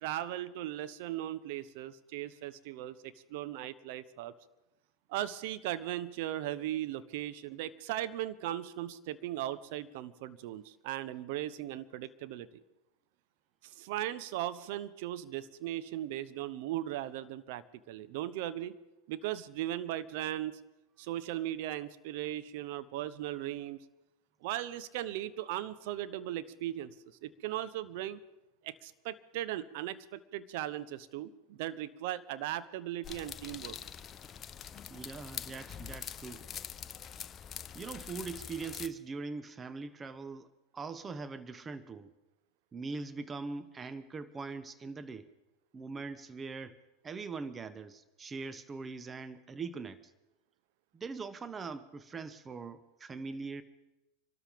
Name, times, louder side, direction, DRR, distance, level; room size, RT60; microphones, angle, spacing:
voice 1, 0.0-4.3 5.1-12.6 13.6-18.7 19.1-20.6 21.0-23.8 24.4-26.9 27.2-28.2 28.6-33.8, right 13 dB, 60° right, 14 dB, 0.8 m, -38 dB
sound 1, 33.0-38.9, left 8 dB, 30° left, 0.8 m, -44 dB
voice 2, 34.9-36.5 37.7-40.5 40.7-42.1 42.7-45.3 45.7-46.8 47.0-50.1 50.9-53.6, right 4 dB, 25° right, 13 dB, 0.9 m, -42 dB
25.5 x 13.0 x 3.6 m, 0.97 s
hypercardioid pair, 90°, 0 cm